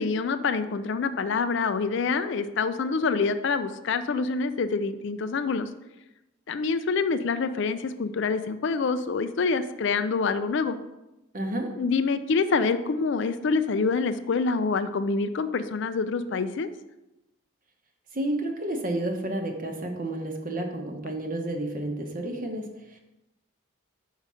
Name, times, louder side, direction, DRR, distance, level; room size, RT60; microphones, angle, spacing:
voice 1, 0.0-5.7 6.5-10.8 11.8-16.7, left 4 dB, 55° left, 11 dB, 0.4 m, -26 dB
voice 2, 11.3-11.7 18.1-23.0, right 1 dB, 40° right, 3 dB, 0.9 m, -31 dB
5.5 x 4.9 x 6.1 m, 0.97 s
head